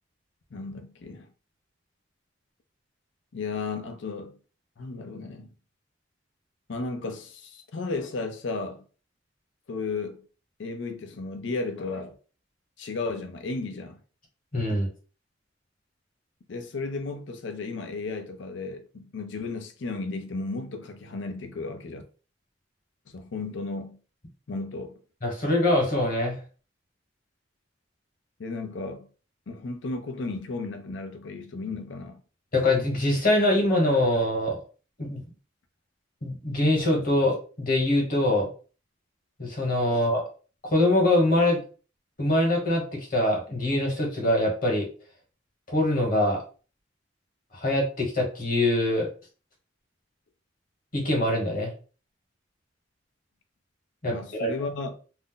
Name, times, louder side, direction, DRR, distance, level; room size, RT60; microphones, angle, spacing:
voice 1, 0.5-1.3 3.3-4.3 4.8-5.5 6.7-8.8 9.7-10.2 10.6-12.2 12.8-14.0 16.5-22.0 23.1-24.0 24.5-25.0 28.4-29.1 29.5-32.2 39.9-40.0 54.1-54.9, left 3 dB, 75° left, 0.5 m, -34 dB
voice 2, 14.5-14.9 25.2-26.4 32.5-34.6 35.0-35.2 36.2-38.5 39.4-40.2 40.6-41.6 42.2-44.9 45.7-46.4 47.5-49.1 50.9-51.7 54.0-54.5, left 1 dB, 45° left, 1.1 m, -23 dB
2.6 x 2.0 x 3.8 m
head